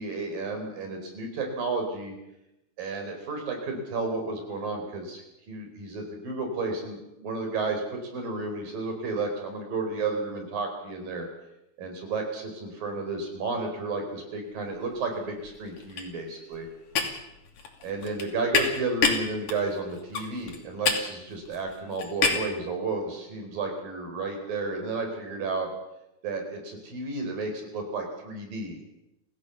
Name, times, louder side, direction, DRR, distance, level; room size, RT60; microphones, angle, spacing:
voice 1, 0.0-2.1 2.8-7.8 8.1-11.3 11.8-16.7 17.8-25.7 26.2-28.9, right 3 dB, 60° right, 4 dB, 6.1 m, -32 dB
sound 1, 14.7-15.1 15.3-22.6, left 5 dB, 60° left, 4.3 m, -29 dB
26.5 x 16.0 x 7.2 m, 0.90 s
omnidirectional pair, 4.5 m